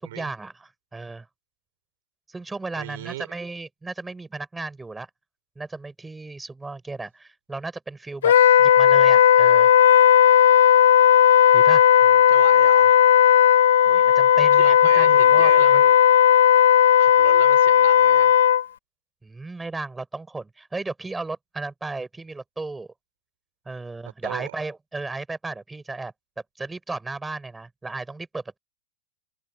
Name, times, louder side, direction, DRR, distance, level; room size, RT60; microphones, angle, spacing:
voice 1, 0.0-1.3 2.3-5.1 5.6-9.7 11.5-11.8 13.8-15.8 19.2-22.9 23.7-26.1 26.6-28.6, right 3 dB, 5° right, 5.2 m, -35 dB
voice 2, 2.7-3.3 12.0-13.0 14.0-14.1 14.5-15.9 17.0-18.4 24.2-24.5, right 15 dB, 60° right, 3.5 m, -36 dB
Wind instrument woodwind instrument, 8.2-18.6, left 10 dB, 80° left, 0.6 m, -15 dB
supercardioid pair, 165°, 0 cm